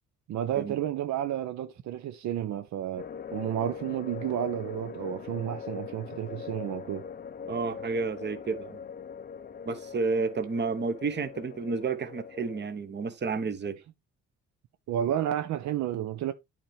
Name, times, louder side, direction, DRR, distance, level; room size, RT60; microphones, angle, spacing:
voice 1, 0.3-7.1 14.9-16.3, right 11 dB, 65° right, 0.6 m, -31 dB
sound 1, 3.0-12.7, left 7 dB, 30° left, 0.6 m, -41 dB
voice 2, 7.5-8.8 9.6-13.8, right 4 dB, 35° right, 1.0 m, -31 dB
8.8 x 4.4 x 3.3 m
cardioid pair, 90°, 30 cm